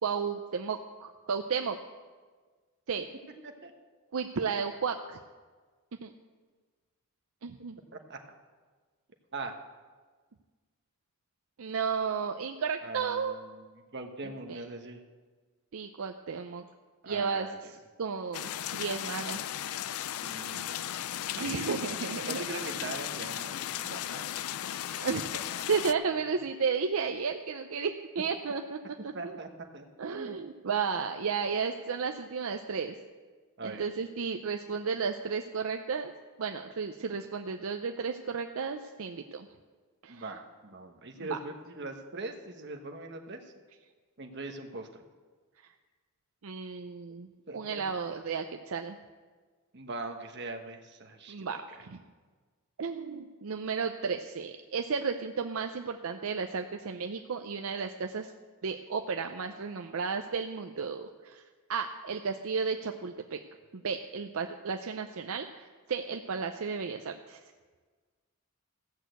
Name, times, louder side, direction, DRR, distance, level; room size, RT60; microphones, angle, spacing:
voice 1, 0.0-1.8 2.9-3.1 4.1-5.2 6.0-6.1 7.4-7.8 11.6-13.3 14.5-14.6 15.7-16.6 17.1-17.5 18.0-19.5 21.4-22.4 24.9-25.3 25.7-28.8 29.0-29.4 30.0-32.9 33.6-36.1 36.4-39.5 40.0-40.2 41.2-41.4 46.4-47.3 47.5-49.0 51.3-52.0 52.8-58.3 58.6-61.4 61.7-63.4 63.7-67.4, right 5 dB, 70° right, 5 dB, 0.5 m, -33 dB
voice 2, 12.8-13.6 13.9-15.0 17.0-17.6 20.2-21.0 21.5-24.5 29.1-30.4 33.6-33.8 40.1-43.4 44.2-45.0 47.5-47.8 48.1-48.2 49.7-51.4, right 2 dB, 50° right, 4 dB, 1.1 m, -41 dB
sound 1, 18.3-25.9, left 11 dB, 75° left, 0.4 m, -36 dB
15.0 x 6.4 x 7.9 m, 1.4 s
head